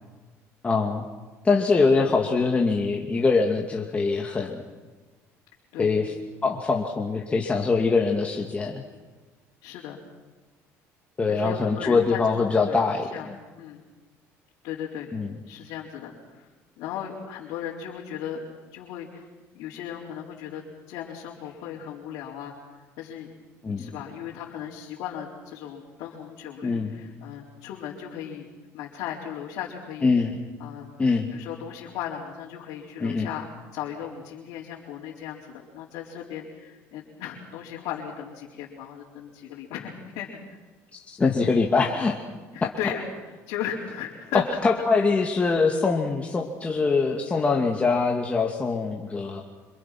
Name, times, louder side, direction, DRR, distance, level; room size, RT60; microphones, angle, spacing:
voice 1, 0.6-1.0 1.4-4.6 5.8-6.1 6.4-8.8 11.2-13.4 15.1-15.3 23.6-23.9 26.6-27.0 30.0-30.4 31.0-31.3 33.0-33.3 41.2-42.2 44.6-49.4, left 4 dB, 20° left, 1 dB, 2.4 m, -23 dB
voice 2, 9.6-10.0 11.3-13.3 13.6-13.8 14.6-15.1 15.5-16.5 16.8-18.4 18.7-19.3 19.5-22.5 23.0-23.3 23.8-28.5 28.7-30.1 30.6-30.9 31.3-33.4 33.7-40.6 42.5-43.0 43.5-44.4, left 9 dB, 75° left, -4 dB, 4.3 m, -36 dB
27.0 x 26.5 x 6.1 m, 1.3 s
cardioid pair, 115°, 6 cm